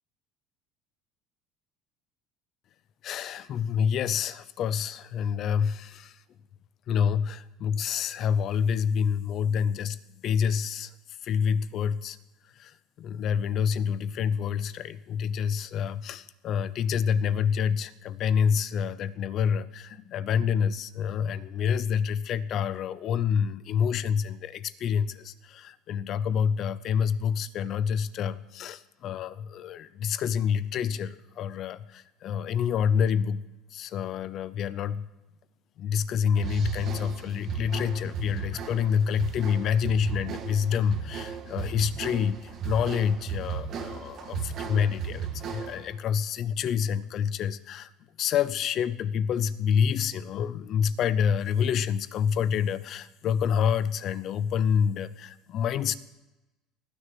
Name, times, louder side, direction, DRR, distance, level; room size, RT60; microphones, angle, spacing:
voice 1, 3.0-6.2 6.9-10.9 11.2-12.2 12.6-33.4 33.7-35.1 35.8-47.9 48.2-55.9, left 7 dB, 45° left, 16 dB, 0.7 m, -27 dB
sound 1, 36.4-45.9, right 7 dB, 40° right, 1.7 m, -36 dB
19.0 x 6.7 x 9.3 m, 1.0 s
cardioid pair, 145°, 0 cm